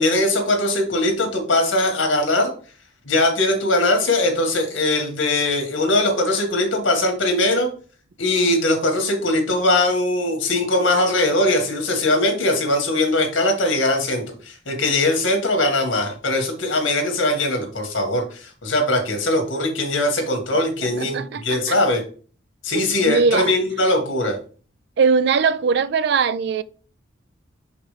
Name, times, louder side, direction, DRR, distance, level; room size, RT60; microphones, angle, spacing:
voice 1, 0.0-2.5 3.0-7.7 8.2-22.0 22.6-24.4, left 2 dB, 80° left, 1.9 m, -20 dB
voice 2, 20.8-21.8 22.7-23.5 25.0-26.6, right 5 dB, 60° right, 0.3 m, -21 dB
6.1 x 5.2 x 3.3 m
head